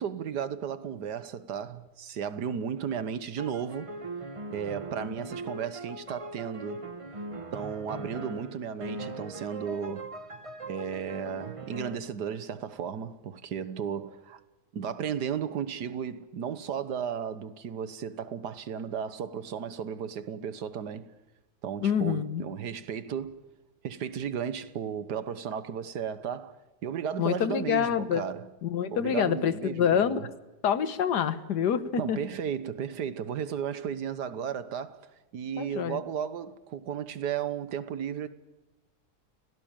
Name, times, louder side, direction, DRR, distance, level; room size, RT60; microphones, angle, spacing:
voice 1, 0.0-4.0 4.5-6.9 7.5-10.1 10.6-14.4 14.7-21.1 21.6-23.4 23.8-28.5 28.9-30.3 32.0-35.0 35.3-38.3, right 8 dB, 90° right, 1.8 m, -34 dB
sound 1, 3.4-12.0, right 2 dB, 20° right, 1.1 m, -40 dB
voice 2, 21.8-22.4 27.2-28.2 28.6-30.2 30.6-32.2 35.6-36.0, left 8 dB, 85° left, 1.7 m, -26 dB
29.5 x 17.5 x 8.9 m
omnidirectional pair, 1.7 m